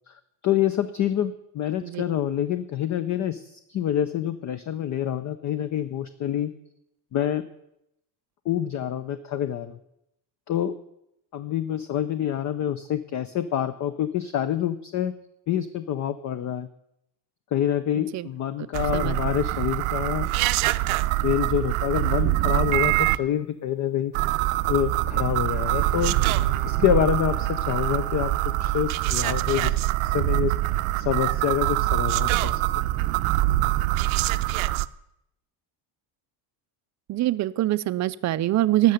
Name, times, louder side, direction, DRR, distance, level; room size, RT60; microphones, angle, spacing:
voice 1, 0.1-6.5 7.1-7.4 8.5-9.8 10.5-10.8 11.3-15.1 15.5-16.7 17.5-20.3 21.2-24.1 24.7-26.1 26.7-28.3 28.6-29.8 30.0-30.5 31.0-32.6, left 10 dB, 40° left, 13 dB, 0.5 m, -26 dB
sound 1, 18.7-23.2 24.1-34.8, right 16 dB, 80° right, 0.6 m, -24 dB
Bowed string instrument, 25.1-29.6 30.0-30.1, left 1 dB, 75° left, 4.1 m, -43 dB
voice 2, 37.1-38.9, right 15 dB, 40° right, 15 dB, 0.4 m, -23 dB
12.5 x 6.6 x 9.3 m, 0.80 s
cardioid pair, 155°, 48 cm